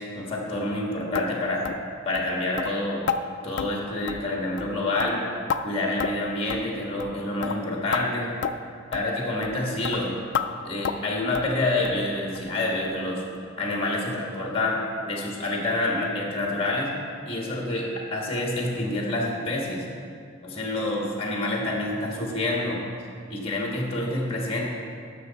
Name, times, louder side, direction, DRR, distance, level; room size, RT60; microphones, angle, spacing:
voice 1, 0.0-1.7 2.0-3.0 3.4-5.2 5.6-8.3 8.9-10.2 10.6-13.2 13.6-17.0 17.2-19.8 20.4-22.8 23.3-24.6, left 2 dB, 30° left, -1 dB, 1.4 m, -27 dB
sound 1, 1.2-1.3 1.7-1.8 2.2-2.3 2.6-2.7 3.1-3.2 3.6-3.7 4.1-4.3 4.6-4.7 5.0-5.6 6.0-6.2 6.5-6.7 7.0-7.2 7.4-7.6 7.9-8.0 8.4-8.5 8.9-9.1 9.4-9.6 9.8-10.0 10.3-10.5 10.8-11.1 11.4-11.5 11.9-12.0 12.4-12.5 12.9-13.0 13.4-13.5, left 6 dB, 60° left, 0.3 m, -29 dB
12.5 x 6.3 x 4.0 m, 2.3 s
head